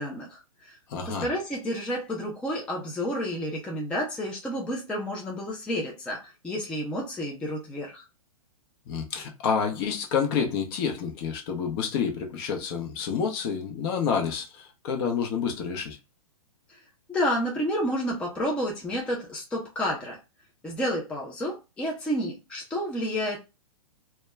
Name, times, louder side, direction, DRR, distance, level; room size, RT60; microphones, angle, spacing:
voice 1, 0.0-0.8 1.1-8.0 16.7-16.8 17.1-20.2 20.6-23.4, equal, 5° left, 0.4 m, -30 dB
voice 2, 0.9-1.3 8.9-16.0, left 6 dB, 40° left, 0.7 m, -28 dB
2.2 x 2.0 x 3.3 m
hypercardioid pair, 135°, 19 cm